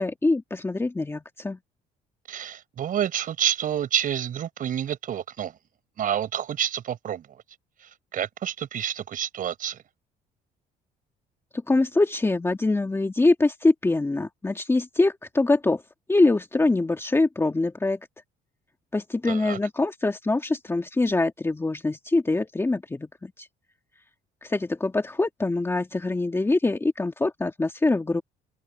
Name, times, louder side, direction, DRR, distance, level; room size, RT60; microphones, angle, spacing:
voice 1, 0.0-1.6 11.7-15.8 16.1-18.0 18.9-23.5 24.4-28.2, left 2 dB, 15° left, 2.2 m, -24 dB
voice 2, 2.3-5.5 6.0-7.3 7.8-9.8 19.2-19.6, right 9 dB, 55° right, 5.5 m, -29 dB
cardioid pair, 110°, 17 cm